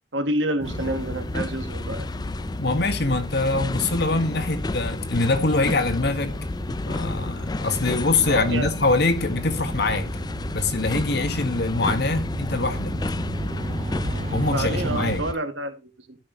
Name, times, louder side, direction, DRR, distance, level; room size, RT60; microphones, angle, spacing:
voice 1, 0.1-2.1 8.3-8.7 14.4-16.2, right 1 dB, 80° right, 1.6 m, -28 dB
sound 1, 0.6-15.3, left 2 dB, 20° left, 0.4 m, -31 dB
sound 2, 0.6-15.2, right 3 dB, 40° right, 0.5 m, -36 dB
voice 2, 2.6-6.3 6.9-10.1 10.5-12.9 14.3-15.2, left 3 dB, 60° left, 1.5 m, -24 dB
13.0 x 6.3 x 3.0 m
head